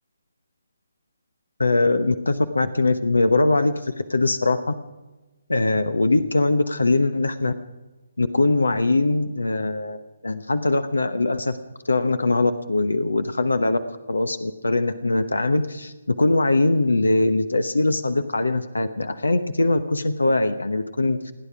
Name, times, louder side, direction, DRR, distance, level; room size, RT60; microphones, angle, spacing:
voice 1, 1.6-4.6 5.5-7.5 8.2-11.6 11.8-13.8 14.1-21.3, left 2 dB, 70° left, 11 dB, 1.0 m, -21 dB
29.0 x 9.8 x 4.9 m, 1.2 s
figure-of-eight pair, 140°, 0 cm